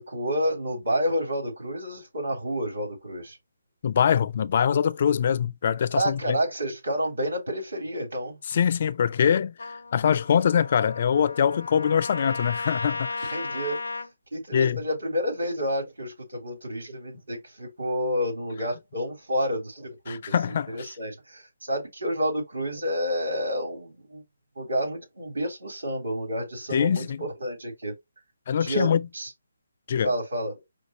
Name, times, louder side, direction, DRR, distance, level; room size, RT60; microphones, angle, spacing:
voice 1, 0.0-3.4 5.9-8.4 13.3-13.8 14.3-24.2 24.6-27.9 28.6-29.3 30.0-30.6, equal, 80° right, 3.1 m, -29 dB
voice 2, 3.8-6.4 8.5-13.4 14.5-14.8 20.1-20.9 26.7-27.2 28.5-29.0 29.9-30.1, left 8 dB, 45° left, 0.3 m, -23 dB
Trumpet, 9.6-14.1, left 3 dB, 85° left, 0.7 m, -35 dB
5.1 x 2.4 x 3.0 m
hypercardioid pair, 155°, 0 cm